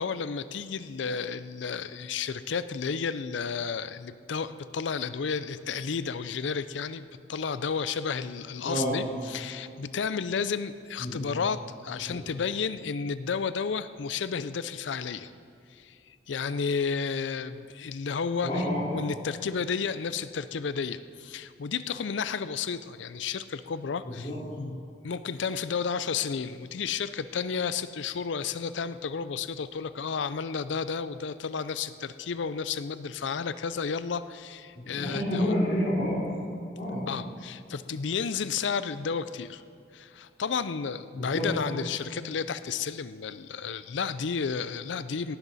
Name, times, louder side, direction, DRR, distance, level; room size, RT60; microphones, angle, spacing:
voice 1, 0.0-15.3 15.7-18.5 18.9-24.3 24.6-35.5 37.1-39.6 39.9-45.4, left 6 dB, 80° left, 13 dB, 0.5 m, -32 dB
voice 2, 8.6-9.0 11.0-11.2 12.0-12.1 18.4-18.8 24.0-24.4 34.7-36.2 36.7-37.0 41.2-41.4, equal, 45° left, -11 dB, 3.2 m, -29 dB
18.0 x 12.0 x 4.1 m, 2.4 s
head